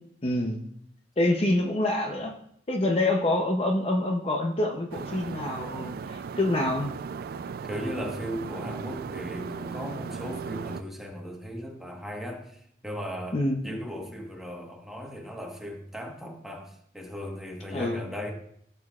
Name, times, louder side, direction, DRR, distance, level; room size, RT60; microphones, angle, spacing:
voice 1, 0.2-0.6 1.2-2.4 2.7-6.9 13.3-13.6 17.7-18.0, left 1 dB, 35° left, 2 dB, 0.7 m, -26 dB
sound 1, 4.9-10.8, right 5 dB, 55° right, 0.3 m, -37 dB
voice 2, 7.6-18.3, equal, ahead, 0 dB, 1.3 m, -37 dB
15.5 x 6.9 x 2.4 m, 0.71 s
head